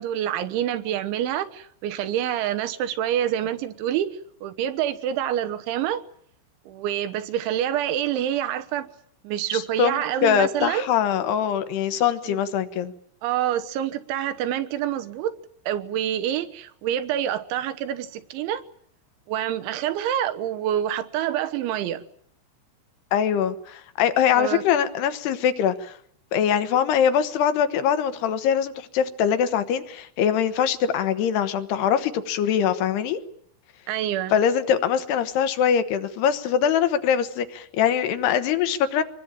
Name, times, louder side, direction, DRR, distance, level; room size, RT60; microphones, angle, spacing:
voice 1, 0.0-6.0 6.7-8.9 9.2-10.9 12.2-12.4 13.2-15.4 15.7-18.6 19.3-22.0 24.4-24.6 33.9-34.3, right 11 dB, 75° right, 3.5 m, -27 dB
voice 2, 9.5-12.9 23.1-26.0 26.3-33.2 34.3-39.0, left 8 dB, 70° left, 2.9 m, -23 dB
25.5 x 21.0 x 8.9 m
omnidirectional pair, 5.6 m